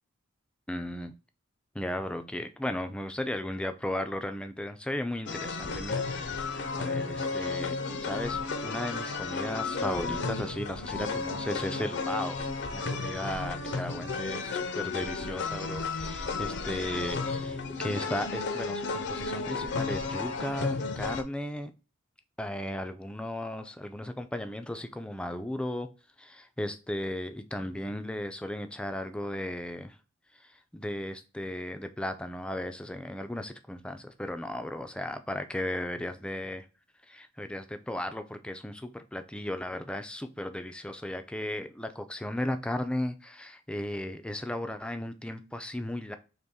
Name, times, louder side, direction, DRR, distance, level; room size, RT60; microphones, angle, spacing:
voice 1, 0.7-1.1 1.7-12.4 12.7-21.7 22.4-25.9 26.2-30.0 30.3-36.7 37.1-46.2, left 1 dB, 5° left, 8 dB, 0.4 m, -35 dB
sound 1, 5.3-21.2, left 4 dB, 55° left, 0.6 m, -33 dB
4.1 x 3.0 x 3.5 m, 0.33 s
head